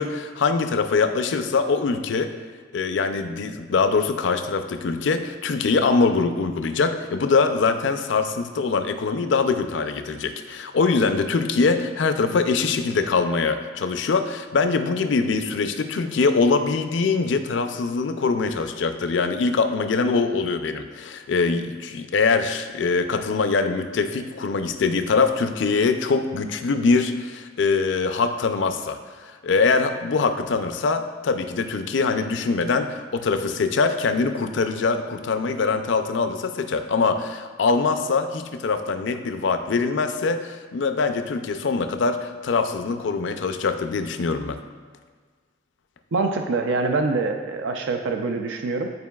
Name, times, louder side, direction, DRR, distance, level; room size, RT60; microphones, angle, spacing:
voice 1, 0.0-2.3 2.7-44.6, left 4 dB, 75° left, 8 dB, 0.4 m, -23 dB
voice 2, 46.1-48.9, right 3 dB, 85° right, 4 dB, 0.4 m, -25 dB
9.5 x 4.5 x 2.3 m, 1.5 s
head